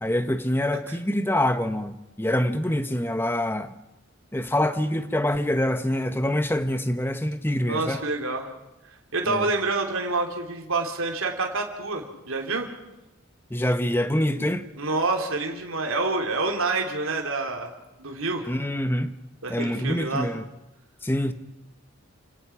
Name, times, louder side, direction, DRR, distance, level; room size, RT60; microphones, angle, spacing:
voice 1, 0.0-3.7 4.3-8.0 9.3-9.5 13.5-14.7 18.5-19.1 19.5-20.4 21.0-21.3, left 1 dB, 10° left, 1.0 m, -25 dB
voice 2, 7.7-8.5 9.1-12.7 14.8-17.7 18.0-18.5 19.4-20.3, right 3 dB, 75° right, 2.9 m, -27 dB
29.0 x 18.5 x 5.9 m
head